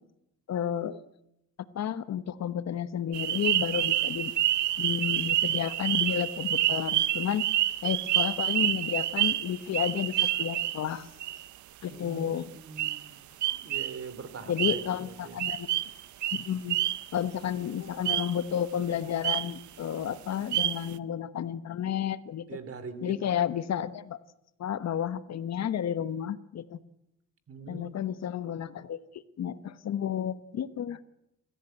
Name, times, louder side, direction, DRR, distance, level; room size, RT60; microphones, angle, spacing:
voice 1, 0.5-1.0 1.7-4.3 4.8-7.4 7.8-11.1 11.8-12.5 14.5-15.7 16.3-16.8 17.1-22.5 23.0-24.2 24.6-26.8 27.7-31.0, left 9 dB, 60° left, 14 dB, 1.1 m, -31 dB
sound 1, 3.1-10.9 11.2-11.5 12.8-13.1 13.4-14.0 14.6-15.0 15.4-17.1 18.0-18.4 19.2-19.6 20.5-20.9, right 13 dB, 75° right, 0.9 m, -28 dB
voice 2, 11.9-13.2 13.5-15.4 22.5-23.4 27.5-27.9, right 5 dB, 50° right, 13 dB, 2.9 m, -43 dB
28.0 x 14.0 x 9.0 m, 0.85 s
cardioid pair, 90°, 30 cm